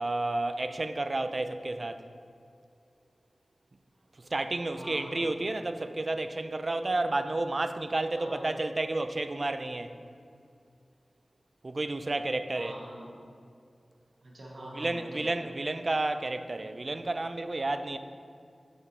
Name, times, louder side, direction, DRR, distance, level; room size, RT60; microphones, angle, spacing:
voice 1, 0.0-2.0 4.2-10.0 11.6-12.7 14.6-18.0, right 2 dB, 45° right, 0.3 m, -31 dB
voice 2, 4.7-5.3 8.1-8.6 12.5-13.2 14.2-15.3, right 1 dB, 65° right, 1.4 m, -44 dB
5.3 x 4.8 x 5.4 m
wide cardioid pair, 85°, 0 cm